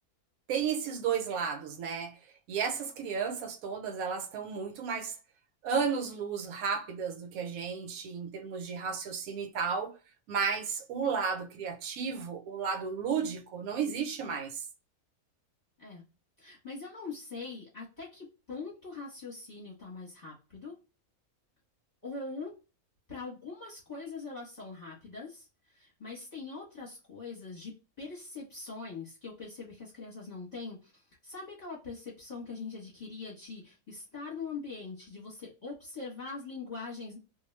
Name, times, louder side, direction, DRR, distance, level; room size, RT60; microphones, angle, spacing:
voice 1, 0.5-2.1 2.5-5.2 5.6-10.0 10.3-14.6, right 6 dB, 75° right, 1.0 m, -33 dB
voice 2, 16.4-20.8 22.0-22.5 23.1-37.2, left 4 dB, 35° left, 0.9 m, -42 dB
2.4 x 2.2 x 3.1 m
omnidirectional pair, 1.6 m